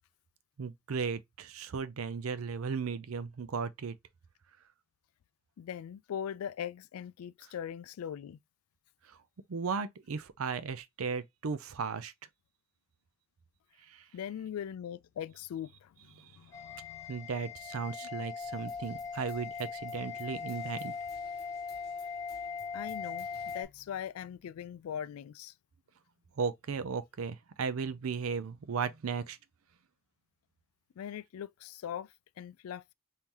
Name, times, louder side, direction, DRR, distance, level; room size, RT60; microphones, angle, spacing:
voice 1, 0.6-4.0 9.1-9.2 9.5-12.1 13.9-14.0 16.2-16.3 17.1-20.9 26.4-29.4, right 5 dB, 75° right, 0.5 m, -36 dB
voice 2, 5.6-8.4 14.1-15.9 16.3-17.1 22.7-25.5 31.0-32.1 32.4-32.9, left 9 dB, 85° left, 0.3 m, -40 dB
sound 1, 16.5-23.6, left 5 dB, 15° left, 1.2 m, -40 dB
sound 2, 18.4-23.6, left 4 dB, 50° left, 0.9 m, -59 dB
3.6 x 2.8 x 2.9 m
head